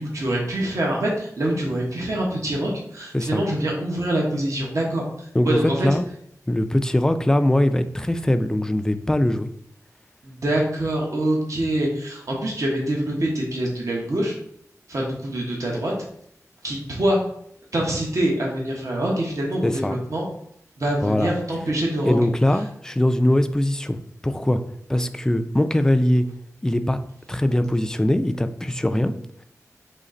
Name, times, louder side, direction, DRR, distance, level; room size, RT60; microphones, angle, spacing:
voice 1, 0.0-5.9 10.2-14.3 14.9-15.9 16.6-17.2 17.7-20.2 20.8-22.1, right 1 dB, 60° right, -2 dB, 1.1 m, -25 dB
voice 2, 5.3-6.0 6.5-9.5 19.6-20.0 21.0-21.3 22.0-24.6 24.9-26.3 26.6-27.0 27.3-29.1, left 1 dB, 10° left, 9 dB, 0.3 m, -21 dB
4.1 x 3.2 x 3.8 m, 0.70 s
wide cardioid pair, 90°, 6 cm